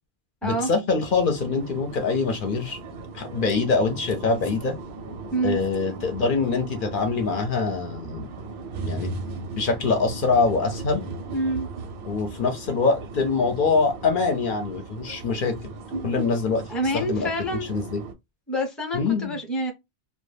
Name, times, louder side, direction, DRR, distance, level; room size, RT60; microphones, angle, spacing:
voice 1, 0.4-2.8 3.1-4.7 5.4-8.3 8.8-9.1 9.6-11.0 12.1-15.7 16.0-16.6 16.9-17.3 17.7-18.0 18.9-19.4, left 4 dB, 60° left, 0.7 m, -24 dB
sound 1, 1.0-18.1, right 3 dB, 85° right, 0.8 m, -37 dB
voice 2, 11.3-11.7 16.7-17.7 18.5-19.7, right 1 dB, ahead, 0.5 m, -27 dB
2.2 x 2.2 x 3.1 m
omnidirectional pair, 1.0 m